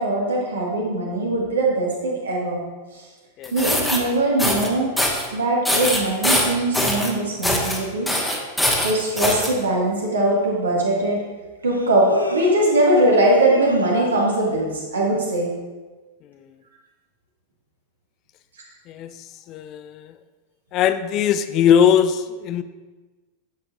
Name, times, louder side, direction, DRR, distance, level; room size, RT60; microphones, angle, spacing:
voice 1, 0.0-2.6 2.9-3.0 3.5-4.9 5.3-8.1 8.8-11.2 11.6-15.5, right 1 dB, 70° right, -3 dB, 1.8 m, -21 dB
sound 1, 3.4-4.0 4.4-4.7 5.0-5.3 5.7-7.1 7.4-7.8 8.1-9.5, left 1 dB, 5° left, 1.1 m, -22 dB
Human voice, 10.3-10.4 11.7-12.9 13.3-14.4, left 1 dB, 90° left, 0.6 m, -31 dB
voice 2, 19.5-20.1 20.7-22.6, left 8 dB, 35° left, 11 dB, 0.4 m, -20 dB
9.1 x 6.8 x 2.6 m, 1.2 s
figure-of-eight pair, 90°, 0 cm